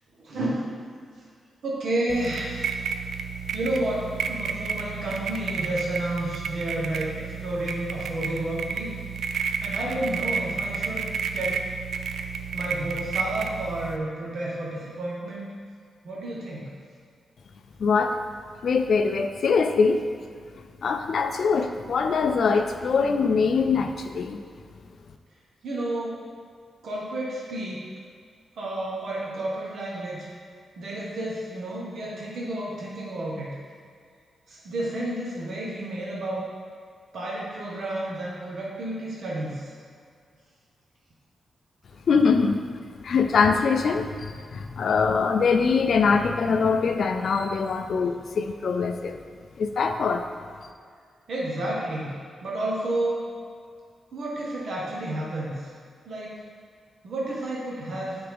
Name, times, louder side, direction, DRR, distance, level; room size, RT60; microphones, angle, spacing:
voice 1, 0.2-0.8 1.6-2.6 3.5-9.0 9.6-11.1 11.3-11.6 12.5-15.5 16.0-16.7 25.6-26.2 26.8-27.9 28.6-30.3 30.8-33.5 34.5-36.4 37.1-39.7 51.3-52.1 52.4-53.2 54.1-55.7 56.1-56.4 57.0-58.2, right 1 dB, 60° right, -5 dB, 1.0 m, -31 dB
sound 1, 2.1-14.0, right 5 dB, 90° right, 0.3 m, -31 dB
voice 2, 17.8-18.2 18.6-20.0 20.8-24.4 42.1-42.6 43.0-49.2 49.6-50.3, left 5 dB, 55° left, 7 dB, 0.4 m, -23 dB
9.3 x 3.5 x 3.4 m, 2.1 s
wide cardioid pair, 170°, 0 cm